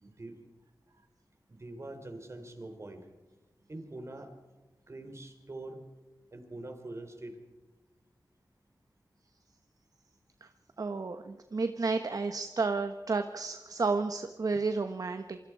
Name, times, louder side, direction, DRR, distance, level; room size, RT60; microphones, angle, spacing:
voice 1, 0.0-0.4 1.5-3.1 3.7-4.3 4.9-5.8 6.3-7.4, right 2 dB, 40° right, 6 dB, 3.4 m, -44 dB
voice 2, 10.8-15.4, right 4 dB, 55° right, 8 dB, 1.1 m, -31 dB
27.5 x 25.0 x 4.8 m, 1.1 s
wide cardioid pair, 105°, 7 cm